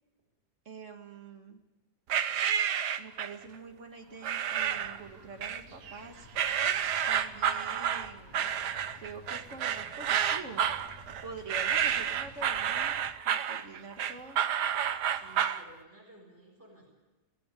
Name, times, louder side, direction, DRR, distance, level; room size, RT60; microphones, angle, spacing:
voice 1, 0.7-1.6 3.0-6.3 7.1-8.5 8.9-10.7 11.2-13.0 13.2-14.4, right 4 dB, 50° right, 5 dB, 2.2 m, -46 dB
sound 1, 2.1-3.4 4.2-5.0 5.4-6.0 6.3-15.6, right 9 dB, 90° right, 1.5 m, -30 dB
sound 2, 4.6-13.1, left 2 dB, 55° left, 2.0 m, -54 dB
voice 2, 15.1-16.9, right 2 dB, 10° right, -5 dB, 6.6 m, -55 dB
17.5 x 16.0 x 9.1 m, 1.1 s
omnidirectional pair, 1.7 m